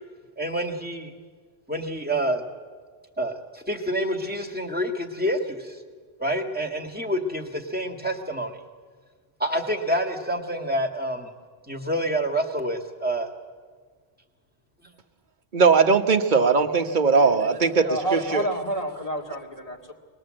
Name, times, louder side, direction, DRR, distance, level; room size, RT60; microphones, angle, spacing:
voice 1, 0.4-1.1 1.7-2.4 3.2-5.8 6.2-8.6 9.4-11.3 11.7-13.3, right 1 dB, 10° right, 1 dB, 2.0 m, -27 dB
voice 2, 15.5-18.5, right 5 dB, 50° right, 7 dB, 1.1 m, -19 dB
voice 3, 17.2-19.9, right 1 dB, 35° left, -1 dB, 2.4 m, -30 dB
24.0 x 20.5 x 7.7 m, 1.5 s
omnidirectional pair, 1.0 m